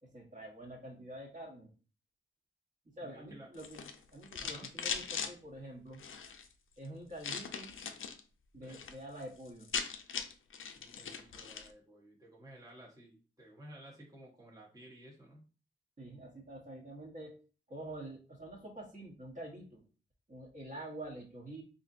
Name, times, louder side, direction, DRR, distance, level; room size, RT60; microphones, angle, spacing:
voice 1, 0.0-1.7 3.0-3.8 4.1-6.0 6.8-7.7 8.5-9.7 16.0-17.3 17.7-19.8 20.3-21.6, right 1 dB, 35° right, -2 dB, 1.1 m, -47 dB
voice 2, 3.0-3.5 4.4-4.7 8.6-8.8 10.8-15.4, right 1 dB, 15° right, -3 dB, 1.0 m, -54 dB
sound 1, 3.5-5.3 5.9-6.5 7.2-8.2 8.5-8.9 9.2-9.3 9.5-11.7, left 6 dB, 70° left, 0.5 m, -40 dB
4.2 x 2.6 x 2.5 m, 0.37 s
wide cardioid pair, 80°, 21 cm